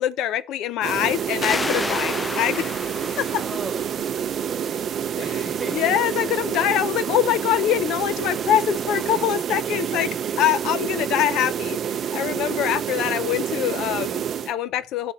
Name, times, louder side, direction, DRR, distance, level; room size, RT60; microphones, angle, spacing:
voice 1, 0.0-2.7 3.2-3.4 5.2-10.1 10.4-15.1, left 11 dB, 70° left, 0.5 m, -24 dB
sound 1, 0.8-14.5, right 9 dB, 45° right, 0.5 m, -28 dB
sound 2, 0.9-9.3, right 1 dB, ahead, 0.9 m, -43 dB
sound 3, 1.4-4.8, left 3 dB, 15° left, 0.4 m, -32 dB
voice 2, 3.4-3.8 4.2-6.1 9.1-10.3, right 3 dB, 20° right, 1.5 m, -39 dB
10.5 x 4.9 x 4.3 m
cardioid pair, 135°, 0 cm